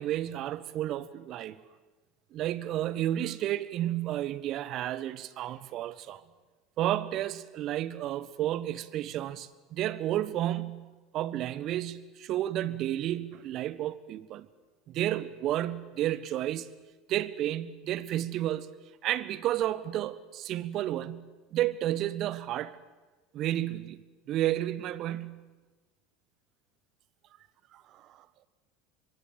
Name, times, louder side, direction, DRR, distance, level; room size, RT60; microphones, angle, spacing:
voice 1, 0.0-1.6 2.3-6.2 6.8-10.9 11.1-14.5 14.9-16.7 17.1-18.7 19.0-22.8 23.3-24.0 24.3-25.4 27.7-28.2, right 13 dB, 50° right, 1.3 m, -31 dB
26.0 x 22.5 x 7.6 m
figure-of-eight pair, 75°, 0 cm